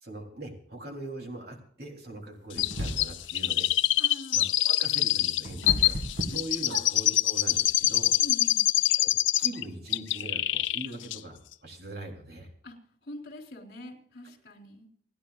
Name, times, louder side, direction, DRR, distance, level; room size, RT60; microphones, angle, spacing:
voice 1, 0.0-3.7 4.3-6.0 6.3-8.1 9.0-9.1 9.4-12.5, right 1 dB, 55° right, 2 dB, 3.5 m, -41 dB
Chirp tweet, 2.6-9.6 9.9-10.9 11.1-11.2, left 14 dB, 85° left, 0.6 m, -25 dB
sound 1, 2.6-3.3 4.9-7.2, equal, 80° right, 2.3 m, -34 dB
voice 2, 4.0-4.4 6.3-6.8 8.2-8.7 10.9-11.1 12.6-12.8 13.0-14.9, left 1 dB, 55° left, 2 dB, 3.8 m, -44 dB
29.5 x 10.0 x 2.5 m, 0.62 s
head